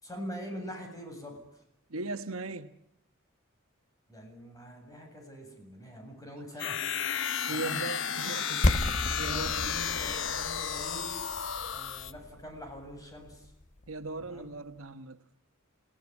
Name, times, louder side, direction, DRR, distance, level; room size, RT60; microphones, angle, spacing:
voice 1, 0.0-1.6 4.1-6.8 7.5-7.9 9.0-11.3 11.7-13.5 14.2-14.6, equal, 15° left, 7.8 m, -44 dB
voice 2, 1.9-2.8 7.5-8.7 9.2-9.7 13.9-15.2, right 3 dB, 80° right, 1.3 m, -38 dB
sound 1, 6.6-12.1, left 8 dB, 65° left, 1.2 m, -33 dB
sound 2, 8.6-14.4, left 1 dB, 35° left, 1.1 m, -33 dB
27.5 x 18.0 x 9.9 m
head